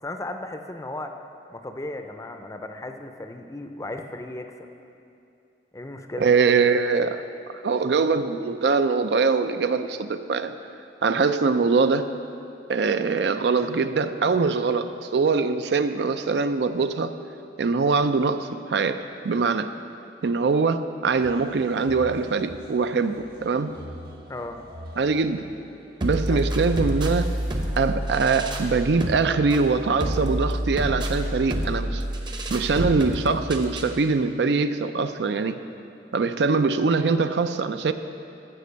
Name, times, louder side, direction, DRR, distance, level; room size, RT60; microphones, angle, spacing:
voice 1, 0.0-1.1 1.5-4.7 5.7-6.3 24.3-24.6 26.3-26.5, left 2 dB, 20° left, 6 dB, 0.5 m, -35 dB
voice 2, 6.2-7.2 7.6-10.5 11.0-12.1 12.7-17.1 17.6-19.0 19.2-19.7 20.2-23.8 25.0-25.5 26.0-27.4 27.8-32.0 32.5-35.6 36.1-37.9, right 4 dB, 70° right, 10 dB, 0.4 m, -23 dB
sound 1, 21.2-29.2, equal, 55° right, 1.4 m, -46 dB
sound 2, 26.0-34.0, right 1 dB, 25° right, 0.7 m, -28 dB
13.5 x 5.2 x 6.8 m, 2.6 s
head